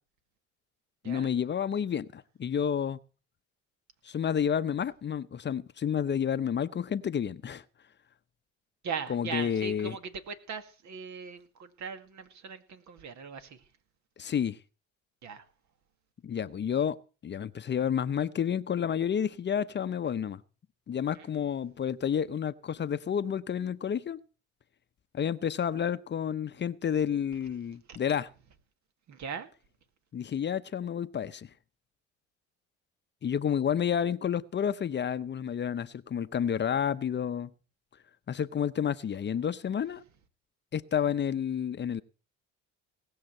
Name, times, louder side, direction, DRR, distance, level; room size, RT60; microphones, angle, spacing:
voice 1, 1.0-3.0 4.0-7.6 9.1-10.0 14.2-14.6 16.2-17.0 17.2-20.4 20.9-24.2 25.1-28.3 30.1-31.5 33.2-37.5 38.3-40.0 40.7-42.0, left 8 dB, 35° left, 0.7 m, -30 dB
voice 2, 8.8-13.6 15.2-15.5 21.1-21.3 27.9-28.0 29.1-29.5, right 6 dB, 60° right, 2.0 m, -39 dB
18.5 x 6.5 x 7.7 m
supercardioid pair, 90°, 31 cm